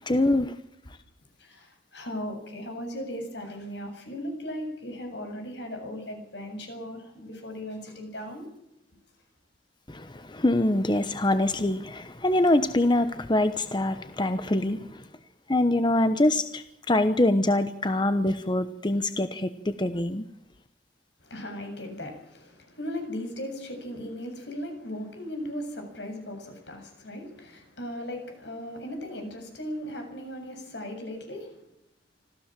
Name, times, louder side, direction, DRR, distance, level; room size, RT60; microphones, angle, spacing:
voice 1, 0.1-0.5 9.9-14.8 15.5-20.2, left 1 dB, 25° left, 10 dB, 1.0 m, -24 dB
voice 2, 1.4-8.4 21.2-31.5, equal, 75° left, 5 dB, 7.7 m, -37 dB
26.0 x 15.5 x 7.6 m, 0.80 s
head